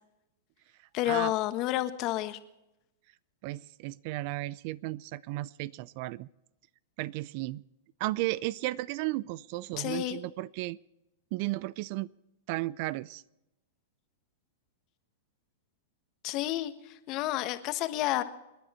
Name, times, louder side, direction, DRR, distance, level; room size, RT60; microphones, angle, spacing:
voice 1, 0.9-2.4 9.8-10.2 16.2-18.2, left 15 dB, 40° left, 10 dB, 1.3 m, -30 dB
voice 2, 3.4-6.3 7.0-7.6 8.0-10.8 11.3-12.1 12.5-13.2, right 18 dB, 50° right, 22 dB, 0.4 m, -34 dB
28.5 x 10.0 x 4.4 m, 0.93 s
hypercardioid pair, 120°, 0 cm